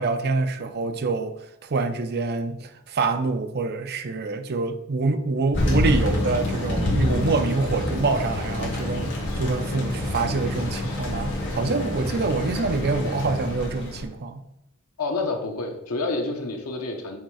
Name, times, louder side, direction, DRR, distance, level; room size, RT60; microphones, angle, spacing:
voice 1, 0.0-14.4, right 3 dB, 45° right, 0.5 m, -26 dB
Thunder, 5.5-14.1, left 1 dB, 55° left, 1.7 m, -27 dB
voice 2, 15.0-17.2, left 3 dB, 85° left, 1.0 m, -28 dB
6.5 x 3.2 x 4.8 m
head